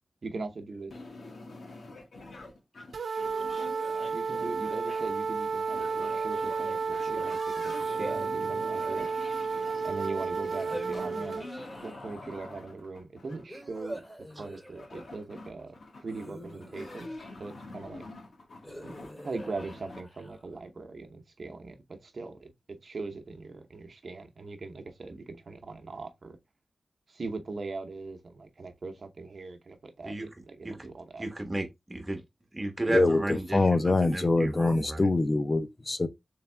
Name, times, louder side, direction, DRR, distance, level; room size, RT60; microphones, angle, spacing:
voice 1, 0.2-0.9 3.6-3.7 4.1-9.1 9.8-11.5 11.7-14.0 14.4-18.1 18.8-18.9 19.2-26.4 27.1-31.2, right 3 dB, 55° right, 0.8 m, -40 dB
sound 1, 0.9-20.0, left 2 dB, 80° left, 1.2 m, -46 dB
sound 2, 2.9-11.4, right 5 dB, 90° right, 0.5 m, -32 dB
sound 3, 3.6-5.1 5.9-6.8 7.7-9.9 10.5-12.4 13.5-15.2 16.1-17.7 18.6-20.6, equal, 10° left, 2.4 m, -45 dB
voice 2, 31.2-32.2 32.5-35.1, right 1 dB, 20° right, 1.2 m, -33 dB
voice 3, 32.9-36.1, left 2 dB, 30° left, 0.6 m, -24 dB
3.5 x 3.4 x 3.2 m
wide cardioid pair, 105°, 0 cm